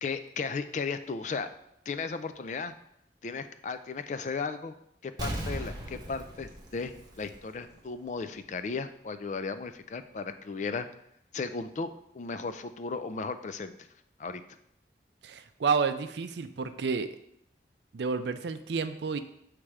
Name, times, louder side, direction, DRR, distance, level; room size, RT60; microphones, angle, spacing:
voice 1, 0.0-1.5 1.9-2.7 3.2-4.7 5.0-6.9 7.2-10.9 11.3-13.7 14.2-14.4, left 4 dB, 40° left, 11 dB, 0.3 m, -35 dB
Explosion, 5.2-7.8 8.1-8.2, right 1 dB, 25° right, 0.9 m, -38 dB
voice 2, 15.2-17.1 17.9-19.2, right 5 dB, 75° right, 10 dB, 0.4 m, -30 dB
7.2 x 3.3 x 4.8 m, 0.77 s
head